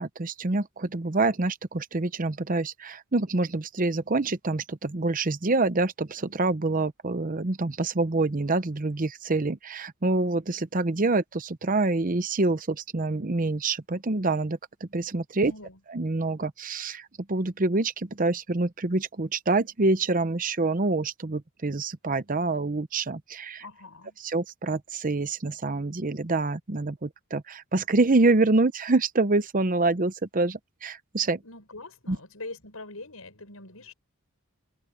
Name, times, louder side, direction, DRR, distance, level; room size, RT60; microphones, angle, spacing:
voice 1, 0.0-14.6 14.9-15.5 15.9-17.0 17.3-23.6 24.2-31.4 32.1-32.2, right 3 dB, 40° right, 0.8 m, -26 dB
voice 2, 15.3-15.8 23.6-24.2 31.4-33.9, left 2 dB, 75° left, 7.0 m, -43 dB
open air
head